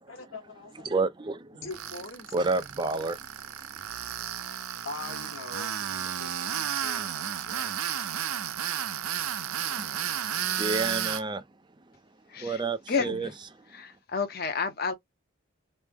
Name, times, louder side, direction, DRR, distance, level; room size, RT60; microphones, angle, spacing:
voice 1, 0.1-0.9 1.5-2.6 4.8-8.7 9.1-9.3, left 3 dB, 60° left, 1.2 m, -44 dB
voice 2, 0.8-1.6 2.3-3.5 7.0-7.1 9.6-11.4 12.4-13.3, right 3 dB, 20° right, 0.4 m, -31 dB
Tools, 1.7-11.2, right 9 dB, 85° right, 0.5 m, -33 dB
voice 3, 12.3-12.6 12.9-13.3 13.7-14.9, left 5 dB, 45° left, 0.7 m, -30 dB
3.2 x 2.0 x 3.4 m
head